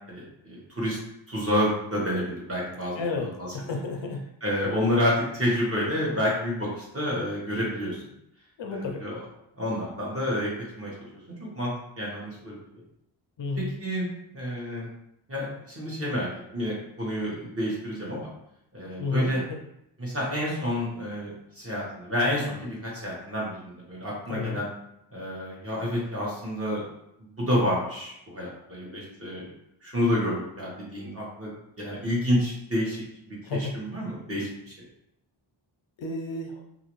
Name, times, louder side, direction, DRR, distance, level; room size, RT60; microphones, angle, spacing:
voice 1, 0.1-1.0 1.3-3.8 4.4-8.1 8.7-9.2 9.6-10.5 10.8-11.1 11.5-12.6 13.6-14.9 15.3-18.3 18.7-19.4 20.0-24.7 25.1-26.8 27.3-29.5 29.8-31.5 31.8-34.7, equal, 30° right, -5 dB, 1.1 m, -29 dB
voice 2, 3.0-3.3 3.5-4.2 8.6-9.0 13.4-13.7 19.0-19.3 24.3-24.6 33.4-33.7 36.0-36.6, left 3 dB, 65° left, 2 dB, 0.5 m, -31 dB
2.6 x 2.6 x 3.0 m, 0.80 s
wide cardioid pair, 110°, 48 cm